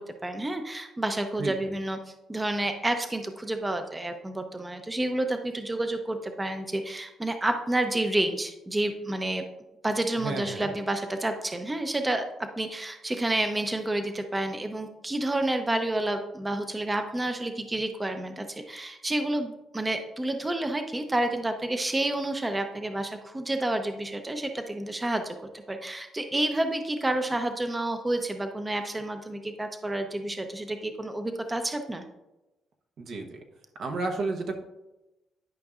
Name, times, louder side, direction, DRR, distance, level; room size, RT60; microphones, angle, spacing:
voice 1, 0.0-2.0 2.3-9.4 9.8-25.4 25.7-32.0, right 1 dB, 15° right, 6 dB, 0.6 m, -29 dB
voice 2, 10.2-10.7 33.0-33.4 33.8-34.6, right 3 dB, 65° right, 3 dB, 1.1 m, -32 dB
11.5 x 5.2 x 2.4 m, 0.98 s
cardioid pair, 90°, 0 cm